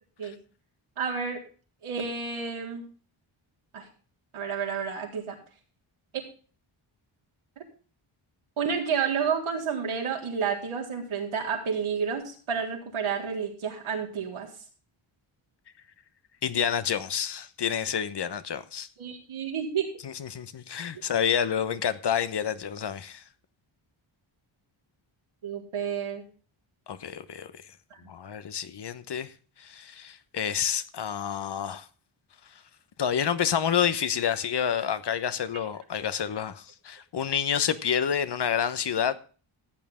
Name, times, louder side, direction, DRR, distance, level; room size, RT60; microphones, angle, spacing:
voice 1, 1.0-1.4 1.8-2.8 3.7-3.9 4.3-5.4 8.6-14.5 19.0-19.9 25.4-26.2 28.0-28.1, right 6 dB, 75° right, 4.0 m, -30 dB
voice 2, 16.4-18.9 20.0-23.2 26.9-27.6 28.1-29.3 29.6-31.9 33.0-39.2, left 8 dB, 55° left, 1.1 m, -29 dB
14.5 x 8.5 x 3.7 m
cardioid pair, 95°, 49 cm